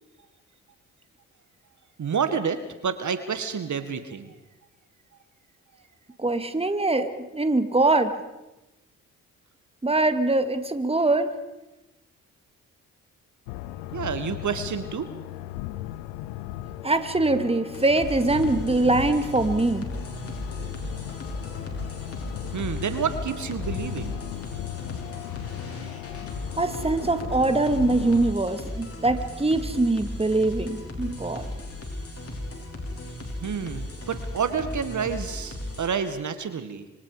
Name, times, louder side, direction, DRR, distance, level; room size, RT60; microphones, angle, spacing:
voice 1, 2.0-4.4 13.9-15.1 22.5-24.2 33.4-36.8, right 6 dB, 55° right, 10 dB, 1.9 m, -29 dB
voice 2, 6.2-8.2 9.8-11.3 16.8-19.9 26.6-31.5, right 2 dB, 15° right, 9 dB, 2.2 m, -23 dB
sound 1, 13.5-28.3, left 14 dB, 85° left, 0.8 m, -37 dB
sound 2, 17.7-35.9, left 1 dB, 40° left, 5.9 m, -36 dB
25.5 x 25.5 x 5.0 m, 1.0 s
hypercardioid pair, 45°, 36 cm